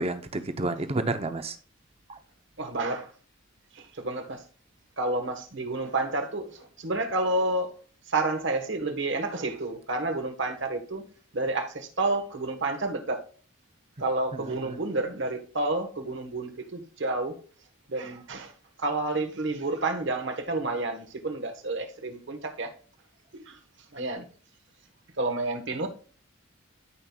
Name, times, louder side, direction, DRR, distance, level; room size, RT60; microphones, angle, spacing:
voice 1, 0.0-1.6 2.1-2.2 14.3-14.8, right 2 dB, 30° right, 0.7 m, -30 dB
voice 2, 2.6-3.1 3.8-4.4 5.0-7.7 8.1-11.0 11.3-13.2 14.0-17.4 17.9-18.5 18.8-22.7 23.3-23.6 23.9-24.2 25.2-25.9, right 2 dB, 60° right, 1.3 m, -30 dB
14.0 x 5.4 x 2.3 m
head